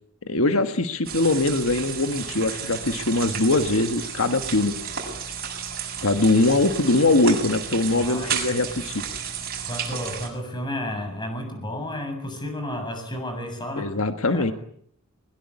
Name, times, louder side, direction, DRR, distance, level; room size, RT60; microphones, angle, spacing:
voice 1, 0.2-4.7 6.0-9.0 13.7-14.5, left 2 dB, 75° left, 8 dB, 1.5 m, -22 dB
sound 1, 1.0-10.3, right 7 dB, 45° right, 7.0 m, -32 dB
voice 2, 8.0-8.3 9.6-13.9 14.3-14.5, left 1 dB, 20° left, 6 dB, 7.2 m, -32 dB
21.5 x 21.5 x 9.8 m, 0.69 s
head